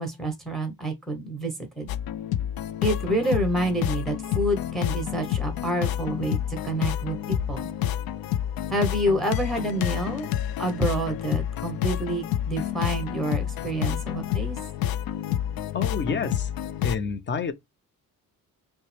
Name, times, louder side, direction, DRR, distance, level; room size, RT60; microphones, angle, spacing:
voice 1, 0.0-1.9 2.8-6.4 6.6-7.7 8.7-10.3 10.6-14.6, right 1 dB, ahead, 1.0 m, -28 dB
sound 1, 1.9-17.0, left 11 dB, 90° left, 0.5 m, -29 dB
voice 2, 15.7-16.5 16.8-17.5, left 5 dB, 30° left, 0.6 m, -28 dB
5.5 x 2.2 x 3.3 m
cardioid pair, 160°, 35 cm